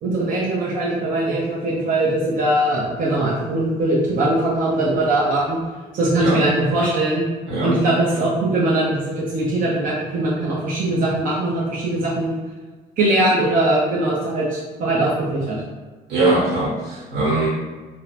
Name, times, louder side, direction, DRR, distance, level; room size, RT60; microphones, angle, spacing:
voice 1, 0.0-5.6 5.9-7.2 7.6-12.4 13.0-15.6, right 1 dB, 55° right, -5 dB, 0.7 m, -21 dB
voice 2, 16.1-17.5, right 2 dB, 85° right, -6 dB, 1.3 m, -21 dB
2.7 x 2.2 x 4.1 m, 1.3 s
cardioid pair, 110°, 17 cm